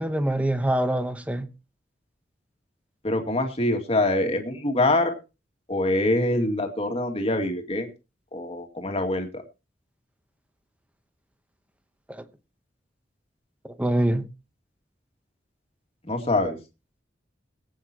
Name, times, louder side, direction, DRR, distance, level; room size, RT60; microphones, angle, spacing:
voice 1, 0.0-1.5 12.1-12.2 13.6-14.2, right 1 dB, 10° right, 0.9 m, -25 dB
voice 2, 3.0-5.1 5.7-7.9 8.3-9.3 16.0-16.6, left 2 dB, 35° left, 2.2 m, -24 dB
22.0 x 8.6 x 2.9 m
head